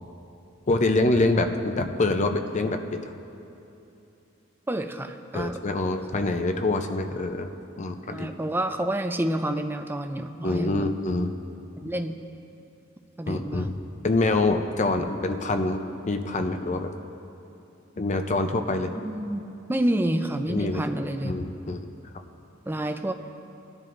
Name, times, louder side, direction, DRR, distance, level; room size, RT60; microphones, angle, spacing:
voice 1, 0.7-3.0 5.3-7.5 7.8-8.3 10.4-11.3 13.3-13.7 14.0-16.9 18.0-18.9 20.5-20.8 21.2-21.8, left 2 dB, 35° left, 6 dB, 0.6 m, -25 dB
voice 2, 4.7-5.6 8.1-10.9 11.8-12.2 13.2-13.7 19.0-21.4 22.7-23.1, right 1 dB, 10° right, 6 dB, 0.4 m, -28 dB
18.0 x 11.0 x 2.6 m, 2.9 s
head